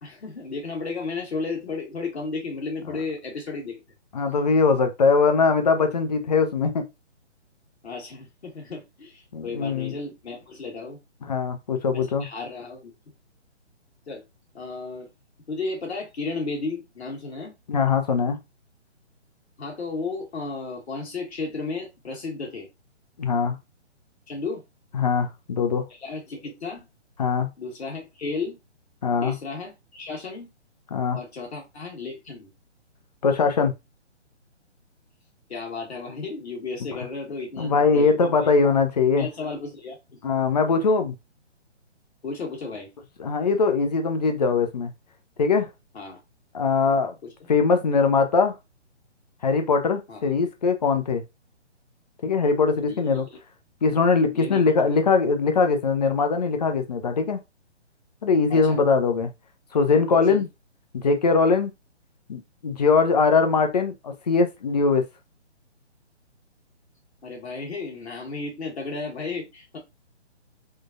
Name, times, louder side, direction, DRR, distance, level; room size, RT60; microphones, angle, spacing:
voice 1, 0.0-3.8 7.8-11.0 11.9-12.9 14.1-14.2 14.5-15.1 15.5-17.5 19.6-22.7 24.3-24.6 26.0-26.8 27.6-28.6 29.2-30.5 31.1-32.5 35.5-38.5 39.1-40.0 40.2-40.3 42.2-42.9 45.9-46.2 50.1-50.2 52.9-53.0 54.3-54.6 54.9-55.0 58.5-58.8 60.1-60.5 67.2-69.8, left 3 dB, 60° left, 1.7 m, -33 dB
voice 2, 4.1-6.8 9.3-9.9 11.3-12.3 17.7-18.4 23.2-23.5 24.9-25.9 27.2-27.5 29.0-29.4 30.9-31.2 33.2-33.7 37.6-39.3 40.2-41.1 43.2-44.9 45.4-45.7 46.5-47.1 47.5-48.5 49.4-51.2 52.2-53.3 53.8-57.4 58.2-59.3 59.7-60.5 60.9-61.7 62.3-65.0, left 4 dB, 35° left, 0.5 m, -21 dB
3.7 x 2.3 x 2.6 m
figure-of-eight pair, 145°, 36 cm